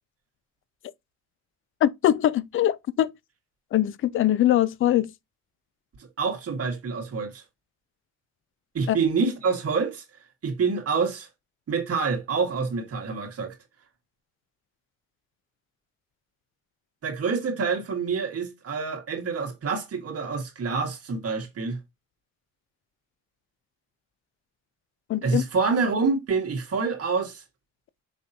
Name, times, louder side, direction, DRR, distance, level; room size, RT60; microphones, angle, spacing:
voice 1, 1.8-3.1 3.7-5.1 8.9-9.0 25.1-25.4, left 12 dB, 45° left, 0.4 m, -22 dB
voice 2, 6.2-7.4 8.7-10.0 10.4-11.3 11.7-13.6 17.0-21.8 25.2-27.4, right 5 dB, 50° right, 1.8 m, -27 dB
5.4 x 3.4 x 2.7 m
cardioid pair, 90°, 30 cm